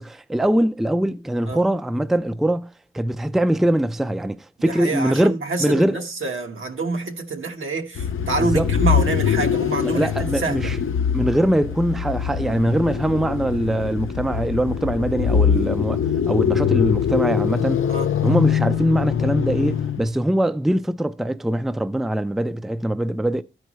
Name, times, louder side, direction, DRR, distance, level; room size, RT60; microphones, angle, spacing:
voice 1, 0.0-5.3 5.6-6.0 8.4-8.7 9.9-10.8 11.1-17.8 18.2-23.4, right 1 dB, ahead, 0.4 m, -22 dB
voice 2, 4.6-10.7 17.9-18.1, right 3 dB, 75° right, 1.2 m, -27 dB
sound 1, 8.0-20.1, left 8 dB, 75° left, 0.5 m, -23 dB
13.0 x 4.6 x 3.0 m
cardioid pair, 55°, 21 cm